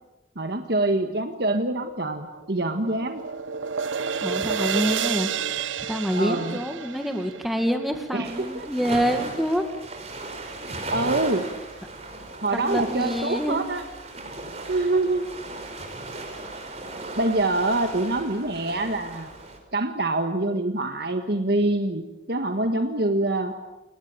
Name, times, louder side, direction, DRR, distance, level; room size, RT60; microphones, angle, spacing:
voice 1, 0.4-3.2 6.2-6.6 8.1-8.7 10.4-11.6 12.4-13.9 14.7-15.3 17.2-19.3 19.7-23.6, right 2 dB, 55° right, 6 dB, 1.6 m, -25 dB
sound 1, 2.2-8.5, right 6 dB, 85° right, 0.9 m, -30 dB
voice 2, 4.2-5.3 5.9-9.6 12.5-13.6, equal, ahead, 5 dB, 2.0 m, -26 dB
sound 2, 8.2-19.6, right 2 dB, 35° right, 5.2 m, -37 dB
29.5 x 21.0 x 9.0 m, 1.0 s
head